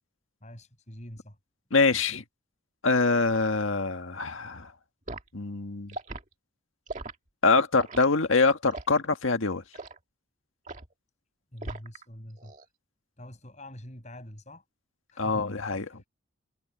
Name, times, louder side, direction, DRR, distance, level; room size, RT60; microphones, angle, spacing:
voice 1, 0.4-1.4 11.5-12.5 13.2-14.6 15.1-15.4 15.7-16.0, left 1 dB, 35° left, 7.3 m, -45 dB
voice 2, 1.7-2.2 2.8-4.7 5.3-6.0 7.4-9.6 15.2-16.0, left 3 dB, 90° left, 1.7 m, -24 dB
Liquid, 5.1-5.3 5.9-6.2 6.9-7.2 7.8-8.1 8.7-9.0 9.7-10.0 10.7-10.9 11.6-12.0 12.4-12.7, right 2 dB, 40° right, 1.9 m, -39 dB
head